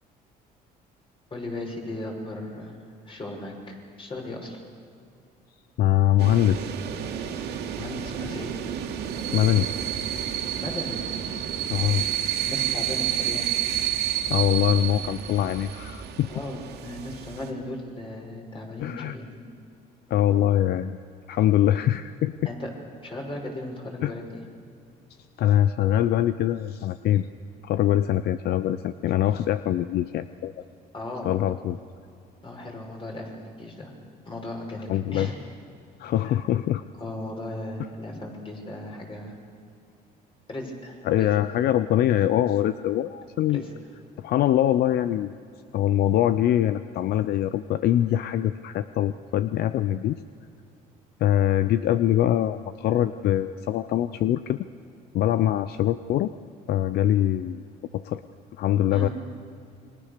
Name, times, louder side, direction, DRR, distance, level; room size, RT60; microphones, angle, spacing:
voice 1, 1.3-2.7 3.1-4.6 7.8-8.5 10.6-11.0 12.4-13.5 16.3-19.4 22.4-22.7 23.0-24.4 30.9-31.3 32.4-33.9 34.2-35.3 36.2-36.4 37.0-39.4 40.5-41.3 43.5-43.7 58.9-59.1, left 1 dB, 30° left, 1 dB, 6.2 m, -36 dB
voice 2, 5.8-6.7 9.3-9.7 11.7-12.0 14.3-16.3 18.8-19.1 20.1-21.0 21.3-22.3 24.0-24.1 25.4-27.3 27.6-30.6 31.2-31.8 34.9-35.3 36.0-36.8 41.0-43.6 44.2-45.3 45.7-50.2 51.2-54.7 55.1-56.3 56.7-57.6 57.9-58.2 58.6-59.1, left 12 dB, 70° left, 13 dB, 0.7 m, -23 dB
sound 1, 6.2-17.5, right 10 dB, 80° right, 2.7 m, -30 dB
29.0 x 23.0 x 6.8 m, 2.5 s
cardioid pair, 110°, 17 cm